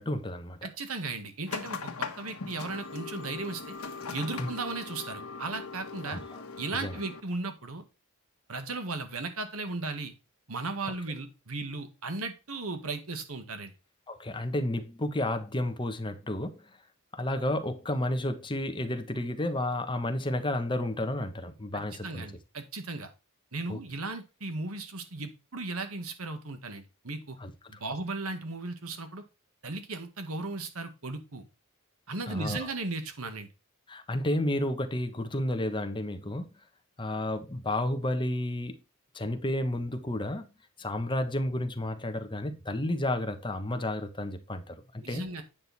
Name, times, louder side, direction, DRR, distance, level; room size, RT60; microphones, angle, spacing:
voice 1, 0.0-0.6 4.4-4.5 6.0-6.4 6.8-7.0 14.1-16.7 17.1-22.3 23.7-23.8 27.4-27.5 32.3-32.7 33.9-36.5 37.0-38.8 39.1-40.5 40.8-45.2, left 1 dB, 20° left, 1.1 m, -31 dB
voice 2, 0.6-3.7 4.1-6.2 6.6-7.8 8.5-10.1 10.5-13.7 21.7-23.1 23.5-27.4 27.7-29.2 29.6-31.4 32.1-33.5 45.0-45.4, right 3 dB, 75° right, 1.7 m, -36 dB
sound 1, 1.5-7.2, left 4 dB, 80° left, 1.3 m, -40 dB
9.0 x 6.2 x 4.2 m
head